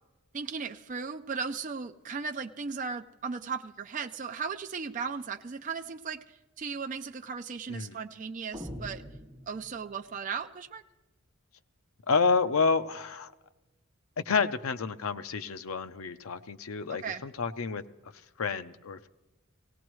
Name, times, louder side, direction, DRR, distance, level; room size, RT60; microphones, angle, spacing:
voice 1, 0.3-9.0 9.5-10.8 17.0-17.2, right 5 dB, 35° right, 6 dB, 0.4 m, -36 dB
sound 1, 8.5-10.1, equal, 15° right, 1.9 m, -43 dB
voice 2, 12.1-13.3 14.3-17.8 18.4-19.1, left 5 dB, 80° left, 12 dB, 0.6 m, -29 dB
18.0 x 17.5 x 3.1 m, 1.1 s
head